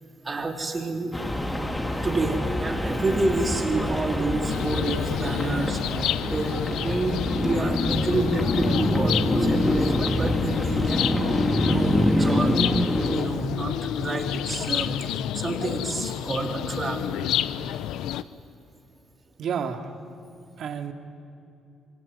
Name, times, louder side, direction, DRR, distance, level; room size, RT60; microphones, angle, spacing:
voice 1, 0.2-1.2 2.0-5.8 6.2-11.1 11.6-12.6 13.1-17.1, right 2 dB, 30° right, 3 dB, 3.5 m, -29 dB
sound 1, 1.1-13.2, left 1 dB, 15° left, 3.3 m, -25 dB
sound 2, 4.5-18.2, left 11 dB, 90° left, 0.7 m, -30 dB
voice 2, 19.4-19.9 20.6-20.9, right 7 dB, 70° right, 5 dB, 2.3 m, -30 dB
26.0 x 24.0 x 9.6 m, 2.6 s
cardioid pair, 90°, 0 cm